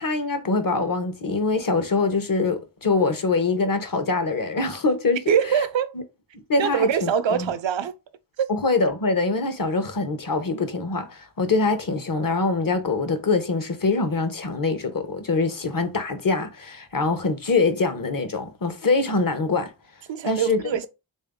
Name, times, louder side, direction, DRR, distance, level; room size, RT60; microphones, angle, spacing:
voice 1, 0.0-5.2 5.5-5.6 6.5-7.5 8.5-19.7 20.2-20.6, left 3 dB, 45° left, 0.9 m, -24 dB
voice 2, 5.3-5.9 6.6-7.9 8.4-8.5 20.1-20.9, right 8 dB, 65° right, 0.6 m, -23 dB
3.4 x 2.7 x 3.6 m
cardioid pair, 40°, 49 cm